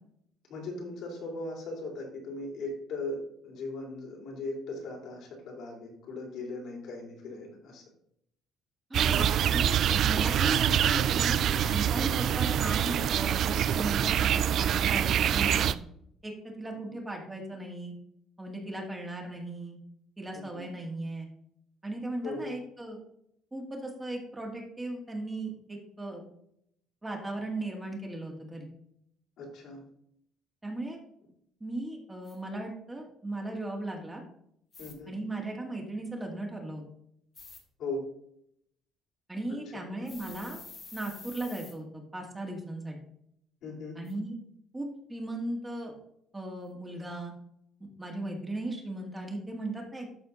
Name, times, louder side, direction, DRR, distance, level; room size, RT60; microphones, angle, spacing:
voice 1, 0.5-7.8 12.1-12.2 20.3-20.6 22.2-22.6 29.4-29.8 34.8-35.1 37.8-38.1 39.5-39.9 43.6-44.0, left 2 dB, 70° left, -1 dB, 3.2 m, -38 dB
voice 2, 8.9-15.7 16.2-17.9 18.4-19.8 20.2-21.3 21.8-23.0 23.5-26.2 27.0-28.7 30.6-31.0 31.6-34.2 35.1-36.8 39.3-40.6 40.9-43.0 44.0-44.4 44.7-45.9 46.3-47.3 47.8-50.2, right 2 dB, 15° right, 0 dB, 1.9 m, -37 dB
sound 1, 8.9-15.7, right 9 dB, 60° right, 0.4 m, -25 dB
sound 2, 32.2-32.3 34.7-34.9 37.3-37.6 40.1-41.7 44.0-44.1, left 4 dB, 30° left, 2.1 m, -47 dB
12.0 x 4.2 x 4.0 m, 0.72 s
cardioid pair, 115°, 0 cm